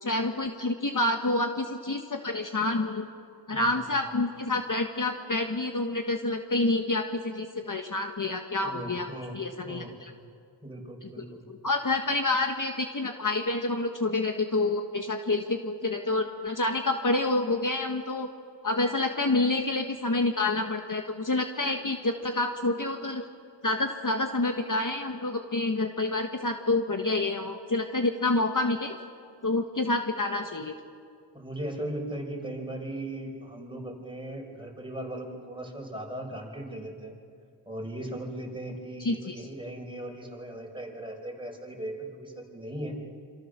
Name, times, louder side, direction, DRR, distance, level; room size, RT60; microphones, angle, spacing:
voice 1, 0.0-3.1 3.5-9.1 9.3-10.1 11.0-11.1 11.5-18.3 18.6-23.2 23.6-29.0 29.4-30.8 39.0-39.3, left 2 dB, 40° left, 5 dB, 1.4 m, -28 dB
voice 2, 3.5-3.9 8.6-9.4 9.7-9.9 10.6-11.4 31.3-37.1 37.7-43.0, right 1 dB, 10° right, 0 dB, 5.3 m, -38 dB
27.0 x 26.5 x 6.8 m, 2.3 s
wide cardioid pair, 75°, 46 cm